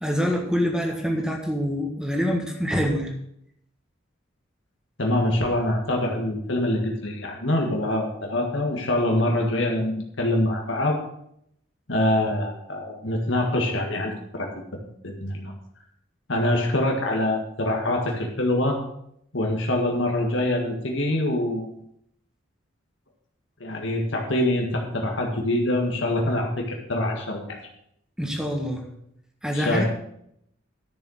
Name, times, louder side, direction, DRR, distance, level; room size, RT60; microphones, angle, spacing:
voice 1, 0.0-3.1 28.2-28.8 29.4-29.8, equal, 5° right, 2 dB, 1.6 m, -25 dB
voice 2, 5.0-11.0 11.9-14.5 15.0-15.5 16.3-18.8 19.3-21.7 23.6-27.6 29.5-29.8, left 1 dB, 70° left, 1 dB, 1.7 m, -25 dB
10.5 x 6.7 x 6.5 m, 0.73 s
head